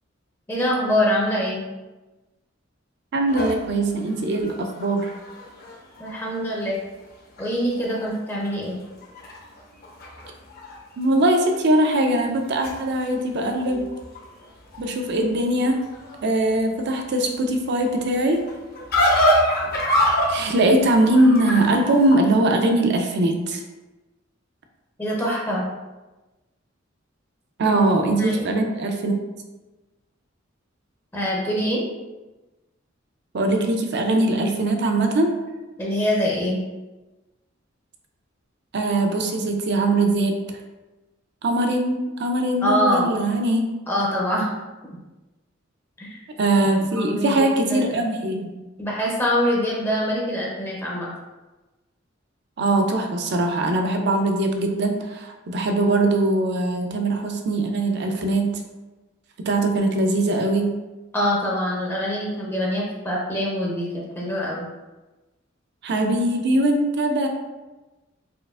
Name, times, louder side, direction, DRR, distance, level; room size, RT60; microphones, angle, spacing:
voice 1, 0.5-1.6 6.0-6.8 7.4-8.7 25.0-25.7 27.7-27.8 28.2-28.7 31.1-31.8 35.8-36.6 42.6-43.1 43.9-44.5 46.0-46.2 47.0-47.4 47.6-48.0 48.8-51.1 61.1-64.7, equal, 10° left, -4 dB, 0.5 m, -24 dB
voice 2, 3.1-5.1 11.0-13.9 14.8-15.9 16.2-18.5 20.3-23.6 27.6-29.2 33.3-35.4 38.7-40.4 41.4-43.7 46.4-48.5 52.6-58.6 59.4-60.8 65.8-67.3, right 1 dB, 60° right, 4 dB, 0.5 m, -21 dB
sound 1, 3.3-6.5 7.0-7.1 7.4-8.1 8.4-10.7 11.0-11.5 12.2-22.2, equal, 50° left, 0.7 m, -27 dB
4.3 x 2.4 x 2.4 m, 1.1 s
head